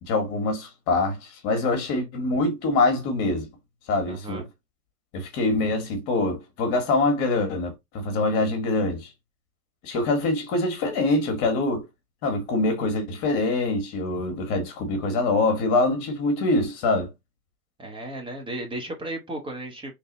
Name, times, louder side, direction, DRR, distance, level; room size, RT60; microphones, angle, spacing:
voice 1, 0.0-3.5 3.9-4.5 5.1-9.1 9.8-11.9 12.2-17.1, left 2 dB, 40° left, 1.4 m, -24 dB
voice 2, 4.1-4.5 17.8-19.9, right 1 dB, 10° right, 0.7 m, -34 dB
3.4 x 2.6 x 3.9 m
hypercardioid pair, 135°, 46 cm